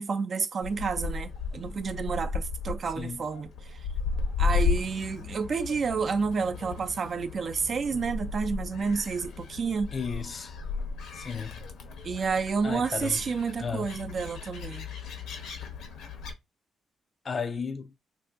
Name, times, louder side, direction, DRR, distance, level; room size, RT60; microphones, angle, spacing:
voice 1, 0.0-3.9 4.4-9.9 12.0-14.9, right 5 dB, 55° right, 0.5 m, -30 dB
Gull seagull, 0.6-16.3, left 5 dB, 85° left, 0.9 m, -34 dB
voice 2, 3.0-3.3 9.9-10.5 11.1-11.6 12.6-13.2 13.6-13.9 17.2-17.9, left 5 dB, 45° left, 0.4 m, -34 dB
2.7 x 2.6 x 3.5 m
cardioid pair, 75°, 0 cm